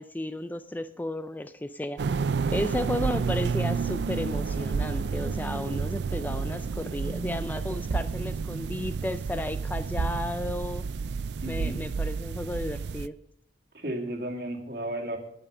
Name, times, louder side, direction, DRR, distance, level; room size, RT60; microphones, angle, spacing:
voice 1, 0.0-2.0 2.5-10.8 11.5-13.2, left 1 dB, 10° left, 12 dB, 0.3 m, -33 dB
sound 1, 2.0-13.1, right 5 dB, 80° right, 0.4 m, -30 dB
voice 2, 11.4-11.8 13.7-15.2, right 1 dB, 60° right, 1 dB, 2.1 m, -33 dB
9.6 x 8.6 x 6.6 m, 0.76 s
head